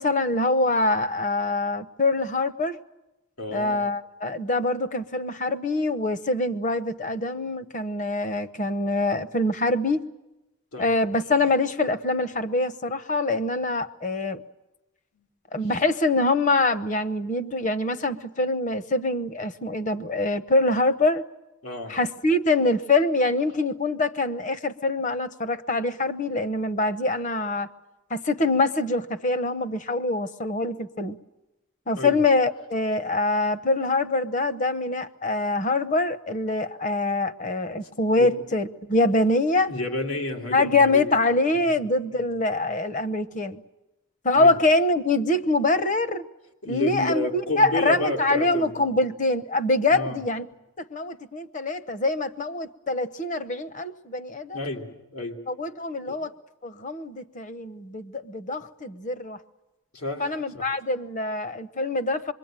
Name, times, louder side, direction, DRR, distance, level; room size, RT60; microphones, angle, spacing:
voice 1, 0.0-2.8 3.5-10.0 10.8-14.4 15.5-21.2 21.9-27.7 28.1-31.2 31.9-39.7 40.5-43.6 44.2-46.3 46.6-50.5 50.8-54.6 55.5-56.3 56.6-59.4 60.2-62.3, left 2 dB, 35° left, 14 dB, 0.8 m, -24 dB
voice 2, 3.4-3.8 10.7-11.0 21.6-22.0 32.0-32.2 37.7-37.8 38.2-38.4 39.7-41.1 44.3-44.6 46.6-48.8 49.9-50.2 54.5-55.4 56.1-56.2 59.9-60.7, left 1 dB, 90° left, 1 dB, 2.9 m, -31 dB
26.5 x 22.5 x 9.0 m, 0.95 s
head